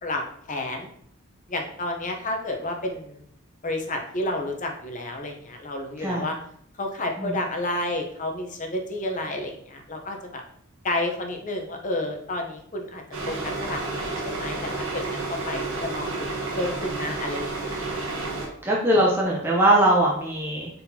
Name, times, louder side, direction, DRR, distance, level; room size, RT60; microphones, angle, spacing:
voice 1, 0.5-0.9 1.5-3.2 3.6-6.4 6.8-10.4 10.8-17.8, left 1 dB, 40° left, 3 dB, 0.7 m, -31 dB
sound 1, 13.1-18.5, right 3 dB, 85° right, 1.0 m, -30 dB
voice 2, 18.6-20.7, right 1 dB, 10° right, -4 dB, 0.7 m, -21 dB
4.1 x 4.0 x 2.7 m, 0.65 s
head